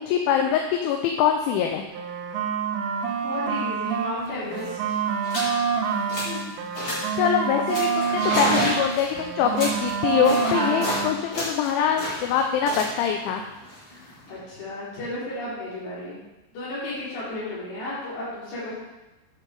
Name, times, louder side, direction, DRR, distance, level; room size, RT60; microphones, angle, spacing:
voice 1, 0.0-1.8 7.1-13.4, left 8 dB, 85° left, 3 dB, 3.0 m, -24 dB
sound 1, 1.9-4.2 4.5-8.9 9.1-11.2, right 6 dB, 90° right, 3.3 m, -27 dB
voice 2, 3.2-5.0 6.2-6.4 10.4-10.8 13.9-16.2 16.5-18.7, left 1 dB, 65° left, -9 dB, 5.5 m, -33 dB
sound 2, 4.2-4.3 4.5-4.7 5.2-5.5 5.9-6.4 6.7-7.2 7.7-11.0 11.3-14.4, left 1 dB, 30° left, 3.5 m, -31 dB
9.2 x 5.5 x 4.8 m, 1.1 s
omnidirectional pair, 5.4 m